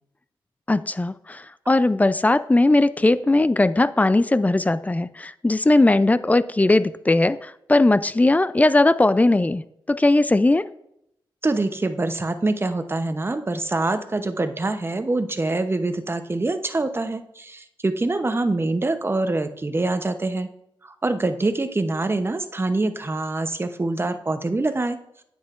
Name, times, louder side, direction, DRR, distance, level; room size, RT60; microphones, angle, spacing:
voice 1, 0.7-9.6 9.9-10.7, left 2 dB, 15° left, 0.4 m, -19 dB
voice 2, 11.4-20.5 20.8-25.0, right 2 dB, 25° right, 0.7 m, -25 dB
9.5 x 7.9 x 2.5 m
cardioid pair, 60°, 9 cm